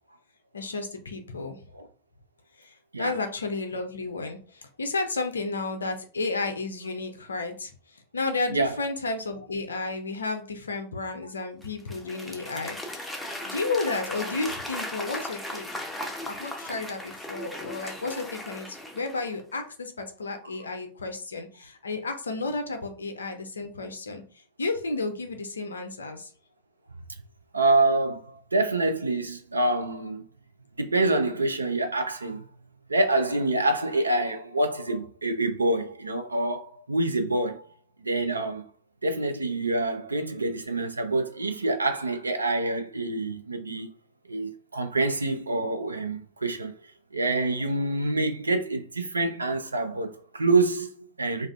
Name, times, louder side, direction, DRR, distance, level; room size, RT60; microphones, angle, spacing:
voice 1, 0.5-1.6 2.6-7.7 8.1-13.1 13.4-15.7 16.3-24.2 24.6-26.3, left 3 dB, 75° left, 0.4 m, -32 dB
Applause / Crowd, 11.6-19.4, left 1 dB, 5° left, 0.5 m, -37 dB
voice 2, 27.5-30.2 30.8-32.5 32.9-37.7 38.0-38.7 39.0-43.9 44.3-46.7 47.1-51.5, right 2 dB, 80° right, 0.4 m, -26 dB
2.3 x 2.3 x 2.3 m
figure-of-eight pair, 90°, 0 cm